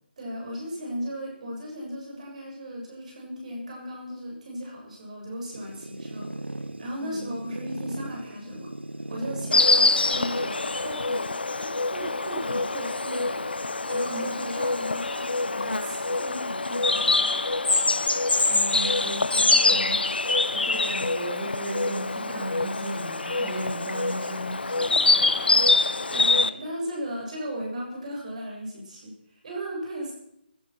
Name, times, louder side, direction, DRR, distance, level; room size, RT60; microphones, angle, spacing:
voice 1, 0.2-8.7 9.1-17.5 26.1-30.1, equal, 40° right, -1 dB, 7.1 m, -36 dB
sound 1, 5.5-15.0 15.8-16.3 16.7-16.8 17.1-17.2 18.0-19.2, right 1 dB, 85° right, 0.8 m, -41 dB
Insect, 9.5-26.5, left 3 dB, 65° left, 0.7 m, -24 dB
voice 2, 18.5-26.3, right 1 dB, 20° right, -5 dB, 3.5 m, -36 dB
16.5 x 11.5 x 6.0 m, 0.76 s
figure-of-eight pair, 150°, 6 cm